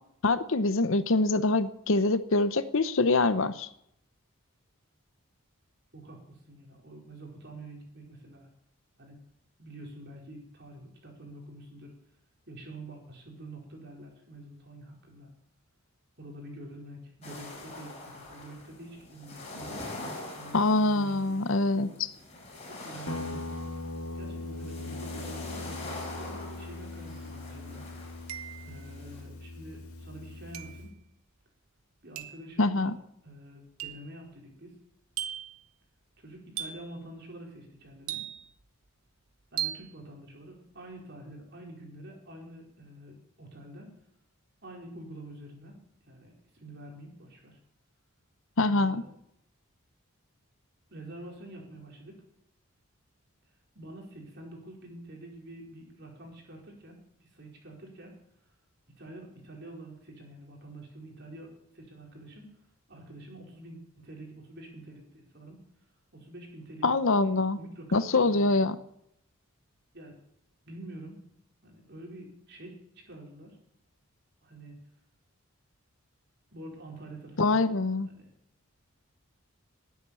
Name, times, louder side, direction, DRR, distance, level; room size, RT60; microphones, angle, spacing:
voice 1, 0.2-3.7 20.5-21.9 32.6-32.9 48.6-49.0 66.8-67.6 67.9-68.8 77.4-78.1, left 3 dB, 65° left, 13 dB, 0.8 m, -24 dB
voice 2, 5.9-8.5 9.0-9.2 9.6-11.9 12.5-15.3 16.2-19.7 20.3-21.4 21.7-21.8 22.7-23.7 24.1-25.8 26.1-27.9 28.6-31.0 32.0-32.9 33.2-34.8 36.2-38.2 39.5-43.9 44.6-47.6 48.6-49.1 50.9-52.2 53.7-58.1 59.0-62.5 62.9-65.6 66.1-68.5 69.9-70.2 70.6-71.3 71.6-73.6 74.4-74.8 76.5-77.8 78.1-78.3, right 1 dB, 50° right, 0 dB, 4.5 m, -47 dB
sound 1, 17.2-29.2, left 2 dB, 30° left, 4.7 m, -44 dB
Guitar, 23.1-30.9, left 2 dB, 85° left, 2.4 m, -40 dB
sound 2, 27.1-27.2 28.3-28.8 30.5-30.9 32.2-32.5 33.8-34.1 35.2-35.6 36.6-37.0 38.1-38.6 39.6-39.9, right 12 dB, 85° right, 1.1 m, -37 dB
19.0 x 8.7 x 7.0 m, 0.77 s
head